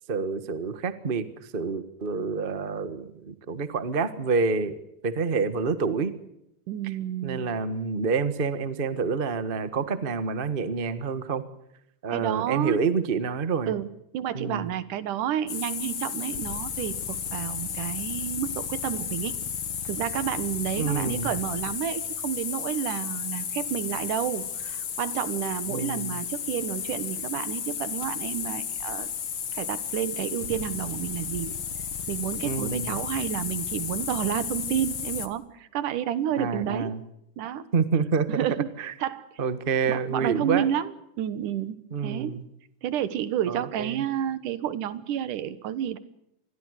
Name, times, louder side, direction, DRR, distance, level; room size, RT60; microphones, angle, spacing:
voice 1, 0.1-4.8 5.0-6.1 7.2-11.4 12.0-13.7 14.3-14.7 20.8-21.3 25.7-26.2 32.4-32.9 36.4-37.0 37.7-38.3 38.8-38.9 39.4-40.7 41.9-42.4 43.5-44.0, right 5 dB, 40° right, 12 dB, 0.7 m, -28 dB
voice 2, 6.7-7.4 12.1-12.8 13.7-19.3 19.9-29.1 29.5-31.6 32.1-37.0 37.4-37.7 38.3-38.7 39.0-39.3 39.9-42.3 42.8-46.0, right 10 dB, 80° right, 15 dB, 2.8 m, -30 dB
sound 1, 15.5-35.3, left 8 dB, 45° left, 2.1 m, -33 dB
26.5 x 21.5 x 6.6 m, 0.81 s
omnidirectional pair, 3.6 m